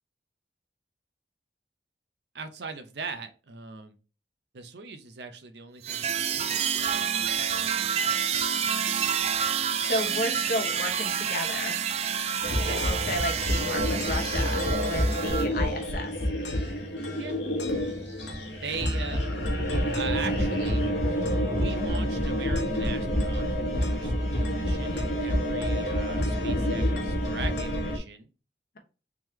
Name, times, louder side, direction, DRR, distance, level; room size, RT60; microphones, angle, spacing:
voice 1, 2.3-4.0 4.5-7.8 12.6-12.8 17.2-17.4 18.6-19.6 19.9-20.9 21.5-23.4 23.8-28.3, right 5 dB, 65° right, 8 dB, 0.6 m, -40 dB
sound 1, 5.8-15.5, right 7 dB, 35° right, 0.3 m, -28 dB
voice 2, 9.6-11.8 12.7-16.1, left 1 dB, 55° left, 4 dB, 0.9 m, -33 dB
sound 2, 12.4-28.0, equal, 80° left, 1.2 m, -28 dB
3.6 x 3.0 x 3.1 m, 0.33 s
head